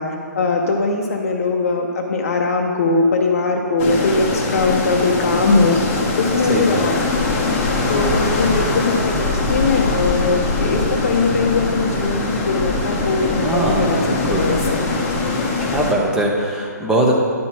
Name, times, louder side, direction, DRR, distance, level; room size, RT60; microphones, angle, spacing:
voice 1, 0.0-7.0 7.2-7.6 7.9-14.0 14.3-14.9, left 3 dB, 50° left, 1 dB, 0.7 m, -20 dB
sound 1, 3.8-15.9, left 3 dB, 20° left, 0.9 m, -22 dB
voice 2, 6.5-6.8 13.4-14.6 15.7-17.1, right 1 dB, 5° right, -2 dB, 0.8 m, -20 dB
10.5 x 4.1 x 6.1 m, 2.3 s
figure-of-eight pair, 140°, 10 cm